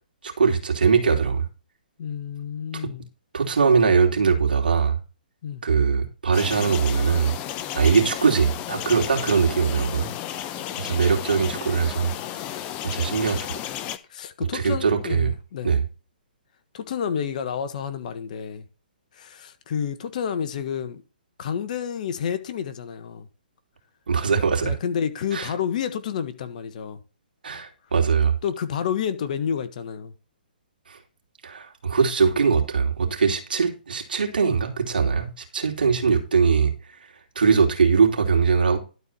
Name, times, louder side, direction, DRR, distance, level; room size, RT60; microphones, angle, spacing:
voice 1, 0.2-1.5 2.7-2.9 3.3-5.0 5.6-7.3 7.7-10.1 10.8-12.1 12.8-13.6 14.5-15.3 15.6-15.8 24.1-24.7 25.3-25.5 27.4-28.3 30.9-31.0 31.4-36.7 37.3-38.8, right 5 dB, 75° right, 3.0 m, -21 dB
voice 2, 2.0-3.1 5.4-5.6 14.1-15.7 16.7-18.6 19.2-21.0 21.4-23.3 24.6-27.0 28.4-30.1, left 8 dB, 50° left, 1.4 m, -29 dB
sound 1, 6.3-14.0, left 11 dB, 25° left, 0.8 m, -33 dB
12.0 x 4.7 x 5.5 m
hypercardioid pair, 135°, 5 cm